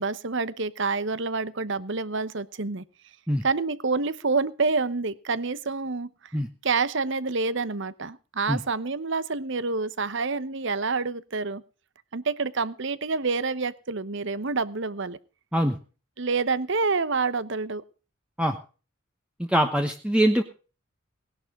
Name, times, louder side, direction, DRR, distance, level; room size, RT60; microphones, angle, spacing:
voice 1, 0.0-2.8 3.4-6.1 6.6-11.6 12.1-15.2 16.2-17.8, right 4 dB, 60° right, 16 dB, 1.0 m, -27 dB
voice 2, 19.4-20.4, equal, 5° right, 4 dB, 1.1 m, -23 dB
18.5 x 11.5 x 3.8 m, 0.35 s
head